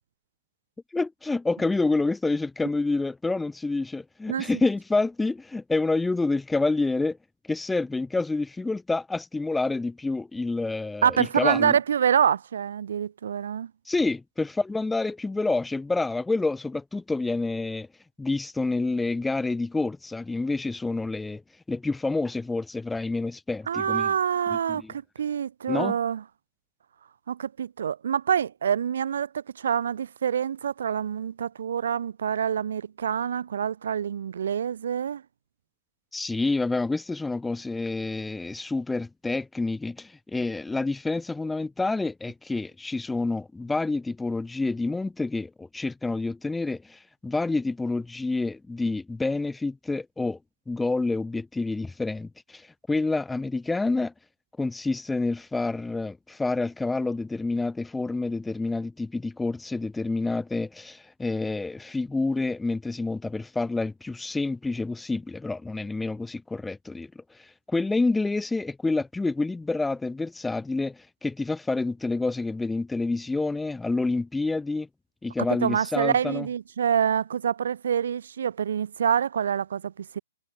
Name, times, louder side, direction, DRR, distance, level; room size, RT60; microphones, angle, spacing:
voice 1, 0.9-7.2 7.5-11.8 13.9-17.9 18.2-21.4 21.7-24.1 24.5-24.9 25.7-26.0 36.1-50.4 50.7-54.1 54.6-67.1 67.4-74.9 75.2-76.5, left 3 dB, 5° left, 0.6 m, -28 dB
voice 2, 11.0-13.7 23.7-26.2 27.3-35.2 75.6-80.2, right 8 dB, 65° right, 0.8 m, -26 dB
hypercardioid pair, 135°, 0 cm